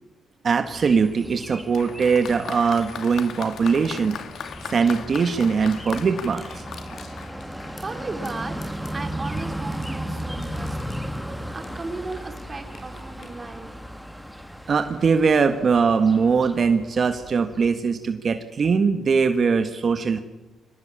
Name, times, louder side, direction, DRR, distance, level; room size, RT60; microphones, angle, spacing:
voice 1, 0.4-4.2 4.7-6.6 14.7-20.2, right 5 dB, 45° right, 8 dB, 1.5 m, -21 dB
sound 1, 0.7-17.7, equal, ahead, 1.6 m, -36 dB
Applause, 1.7-8.2, left 7 dB, 65° left, 2.2 m, -38 dB
sound 2, 5.9-6.0 6.3-7.1 7.5-8.0 8.2-9.9 10.2-11.9 12.1-13.3, left 4 dB, 50° left, 7.1 m, -48 dB
voice 2, 7.8-8.6 8.9-13.7, right 3 dB, 25° right, 6 dB, 4.1 m, -36 dB
23.5 x 18.5 x 8.8 m, 1.1 s
cardioid pair, 90°, 0 cm